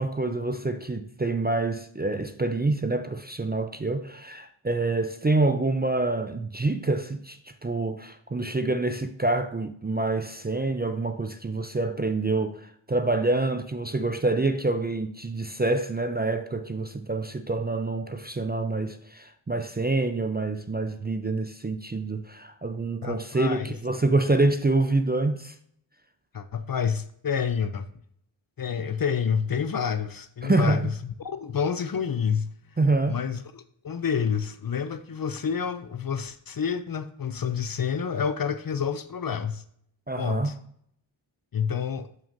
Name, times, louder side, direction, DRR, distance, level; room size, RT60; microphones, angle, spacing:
voice 1, 0.0-25.5 30.4-30.9 32.8-33.2 40.1-40.5, right 2 dB, 20° right, 0.4 m, -26 dB
voice 2, 23.0-23.7 26.3-27.9 28.6-30.9 31.2-32.5 33.1-39.6 40.2-40.5 41.5-42.1, left 7 dB, 45° left, 0.4 m, -28 dB
6.8 x 6.0 x 2.6 m
wide cardioid pair, 60°, 49 cm